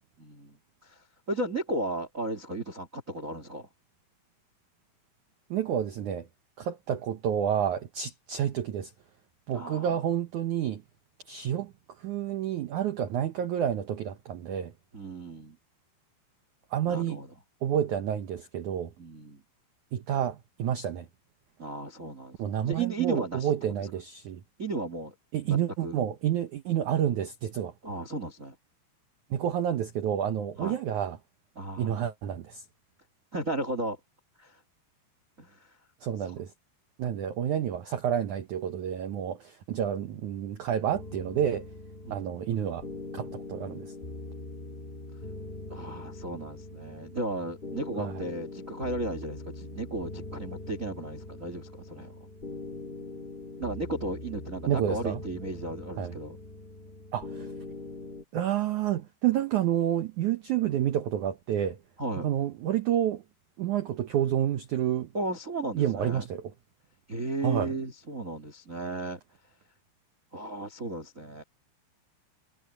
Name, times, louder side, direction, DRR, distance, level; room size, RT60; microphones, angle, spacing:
voice 1, 0.2-3.7 9.5-9.9 14.9-15.6 16.8-17.3 19.0-19.4 21.6-22.4 22.7-23.5 23.8-23.9 24.6-25.1 25.4-26.0 27.8-28.5 30.6-30.8 31.5-32.1 33.3-34.0 34.4-34.6 35.4-35.7 36.2-36.3 42.0-42.3 45.7-52.2 53.6-56.4 62.0-62.3 65.1-66.3 67.1-69.2 70.3-71.4, right 2 dB, 35° right, 1.3 m, -35 dB
voice 2, 5.5-6.3 6.6-8.9 9.5-10.8 11.3-11.7 12.0-14.7 16.7-17.2 17.6-18.9 19.9-21.0 22.4-24.4 25.3-27.7 29.3-31.2 31.8-32.6 36.0-36.5 37.0-41.7 42.1-42.8 43.1-43.9 48.0-48.2 54.7-55.2 56.0-56.1 57.1-57.5 58.3-61.8 62.2-63.2 63.6-65.1 65.7-66.4 67.4-67.7, right 10 dB, 85° right, 1.7 m, -29 dB
sound 1, 40.9-58.2, left 2 dB, 25° left, 1.3 m, -42 dB
omnidirectional pair, 5.1 m